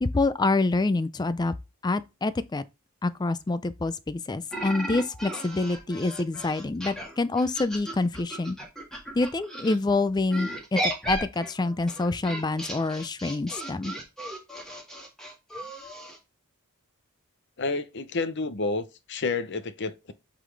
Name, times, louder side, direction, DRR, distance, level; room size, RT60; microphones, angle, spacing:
voice 1, 0.0-1.5 1.8-2.6 3.0-8.6 9.2-13.9, left 3 dB, 20° left, 0.4 m, -26 dB
sound 1, 4.5-9.8 10.3-16.2, right 1 dB, 5° left, 1.8 m, -35 dB
voice 2, 17.6-20.1, left 3 dB, 55° left, 0.7 m, -30 dB
8.1 x 3.9 x 3.3 m
head